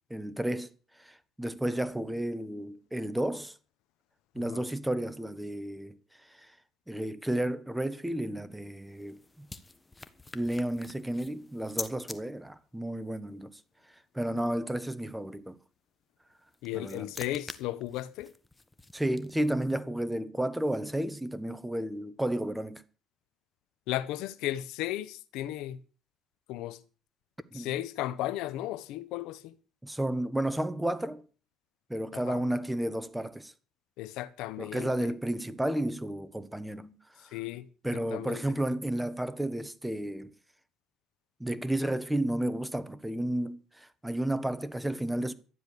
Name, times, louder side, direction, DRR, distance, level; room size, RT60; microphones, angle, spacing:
voice 1, 0.1-3.5 4.3-6.5 6.9-9.5 10.3-13.6 14.1-15.6 16.7-17.1 18.9-22.8 27.5-27.7 29.8-31.2 31.9-33.5 34.6-37.3 37.8-40.3 41.4-45.3, right 1 dB, 5° right, 1.2 m, -32 dB
sound 1, 8.5-12.2 16.3-19.7, left 2 dB, 15° left, 1.3 m, -45 dB
voice 2, 16.6-18.3 23.9-25.8 26.5-26.8 27.5-29.5 32.1-32.4 34.0-35.1 37.2-37.7 38.1-38.4, left 14 dB, 80° left, 1.0 m, -35 dB
12.5 x 10.0 x 6.9 m
cardioid pair, 105°, 0 cm